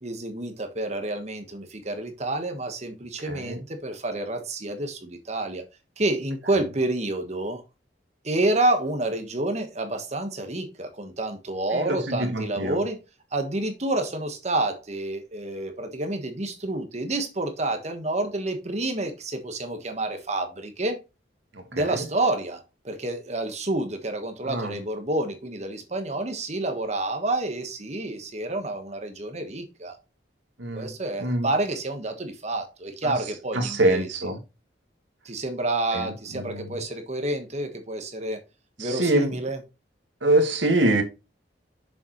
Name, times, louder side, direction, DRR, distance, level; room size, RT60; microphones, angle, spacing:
voice 1, 0.0-5.6 6.0-7.6 8.2-13.0 13.3-21.0 21.7-30.0 30.7-34.1 35.2-38.4 38.8-39.6, right 2 dB, 40° right, 1.3 m, -29 dB
voice 2, 3.2-3.6 11.7-12.8 21.5-22.1 24.4-24.8 30.6-30.9 31.2-31.5 33.0-33.2 33.5-34.4 35.9-36.7 38.8-39.4 40.2-41.0, right 1 dB, 85° right, 1.8 m, -25 dB
7.0 x 6.7 x 3.1 m
head